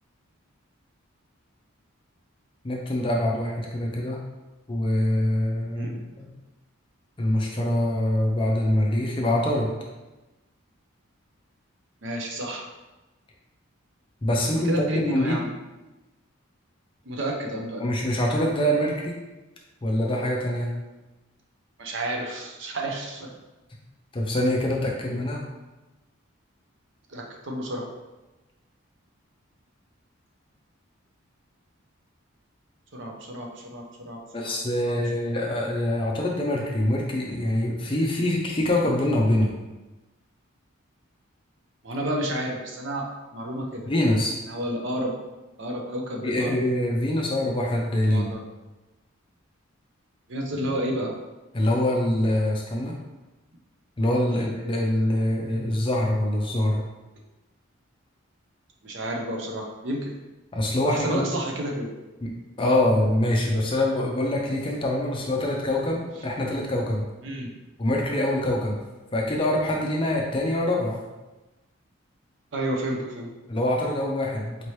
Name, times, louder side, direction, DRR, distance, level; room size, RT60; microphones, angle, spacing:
voice 1, 2.6-4.2 4.7-6.3 7.2-9.7 14.2-15.4 17.8-19.1 19.8-20.7 24.1-25.4 34.3-39.5 43.9-44.3 46.2-48.3 51.5-52.9 54.0-56.8 60.5-61.3 62.2-62.3 62.6-67.0 67.8-68.8 69.1-71.0 73.5-74.6, left 1 dB, 25° left, -1 dB, 0.5 m, -24 dB
voice 2, 12.0-12.7 14.5-15.5 17.0-17.8 21.8-23.3 27.1-27.9 32.9-34.6 34.8-35.0 41.8-43.9 44.5-45.1 45.6-46.6 48.1-48.4 50.3-51.2 54.3-54.5 58.8-60.1 60.9-61.9 67.2-67.5 72.5-73.3, right 1 dB, 55° right, 0 dB, 0.6 m, -31 dB
4.4 x 2.8 x 3.2 m, 1.1 s
head